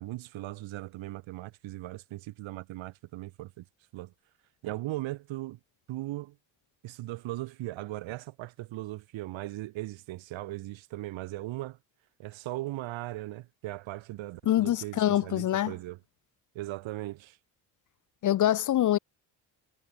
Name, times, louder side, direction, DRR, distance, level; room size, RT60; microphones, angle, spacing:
voice 1, 0.0-3.6 3.9-4.1 4.6-5.6 5.9-6.4 6.8-11.8 12.2-16.0 16.5-17.4, right 17 dB, 80° right, 2.3 m, -38 dB
voice 2, 14.5-15.7 18.2-19.0, left 12 dB, 45° left, 0.5 m, -25 dB
supercardioid pair, 65°, 46 cm